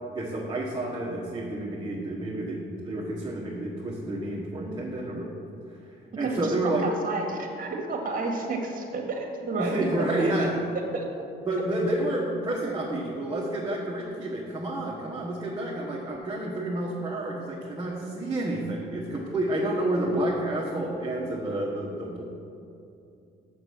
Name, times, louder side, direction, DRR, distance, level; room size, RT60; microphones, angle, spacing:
voice 1, 0.1-5.3 6.2-6.8 9.6-10.5 11.4-22.2, right 1 dB, 20° right, -5 dB, 1.3 m, -30 dB
voice 2, 6.2-6.5 6.8-10.1 10.4-10.5 10.9-11.1, right 3 dB, 45° right, 1 dB, 1.7 m, -31 dB
6.7 x 6.6 x 6.3 m, 2.6 s
cardioid pair, 90°, 20 cm